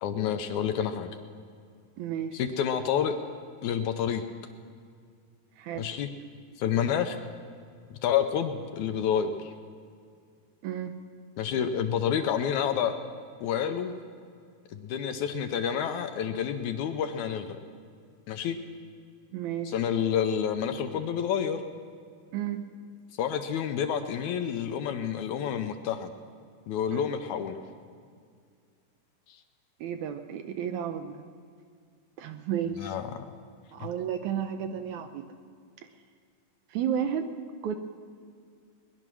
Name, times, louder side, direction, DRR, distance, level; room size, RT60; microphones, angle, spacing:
voice 1, 0.0-1.1 2.3-3.2 3.6-4.3 5.8-6.1 6.6-7.2 7.9-9.5 11.4-13.0 13.4-13.9 14.7-17.6 18.3-18.6 19.7-21.6 23.2-26.1 26.7-27.6 32.8-33.3, left 8 dB, 75° left, 7 dB, 2.0 m, -29 dB
voice 2, 2.0-2.4 5.6-5.9 10.6-11.0 19.3-19.9 22.3-22.7 26.9-27.0 29.8-31.2 32.2-33.0 33.7-35.3 36.7-37.3 37.6-37.8, right 9 dB, 75° right, 7 dB, 1.8 m, -32 dB
20.0 x 11.0 x 6.1 m, 2.2 s
omnidirectional pair, 3.8 m